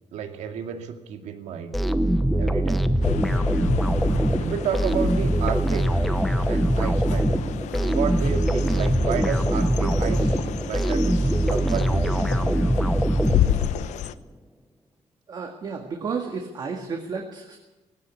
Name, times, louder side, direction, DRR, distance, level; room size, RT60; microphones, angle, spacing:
voice 1, 0.1-1.8 2.4-2.8 4.4-6.0 6.5-7.3 7.8-12.6, right 8 dB, 80° right, 6 dB, 2.3 m, -32 dB
sound 1, 1.7-13.9, right 1 dB, ahead, 0.9 m, -22 dB
sound 2, 3.0-14.1, left 11 dB, 90° left, 0.9 m, -31 dB
voice 2, 15.3-17.6, right 5 dB, 35° right, 3 dB, 2.0 m, -32 dB
18.0 x 17.0 x 8.5 m, 1.1 s
cardioid pair, 175°, 12 cm